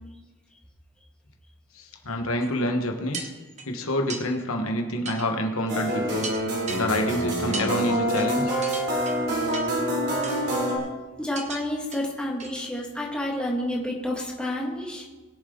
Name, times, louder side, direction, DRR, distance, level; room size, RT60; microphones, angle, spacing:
voice 1, 1.7-3.3 3.6-6.3 6.8-8.5, left 1 dB, 75° left, 3 dB, 1.4 m, -27 dB
sound 1, 2.4-2.5 3.1-3.7 4.1-4.2 5.0-5.3 5.7-5.8 6.2-6.8 7.5-7.7 8.2-8.3 8.6-9.2 9.5-9.8 10.2-10.6 11.3-11.6 11.9-12.0 12.4-12.7 13.1-13.2, right 4 dB, 35° right, 1.4 m, -36 dB
sound 2, 5.7-10.8, equal, 55° right, 3.3 m, -26 dB
voice 2, 11.2-15.1, left 1 dB, 5° left, -3 dB, 2.0 m, -30 dB
21.0 x 7.4 x 3.9 m, 1.2 s
head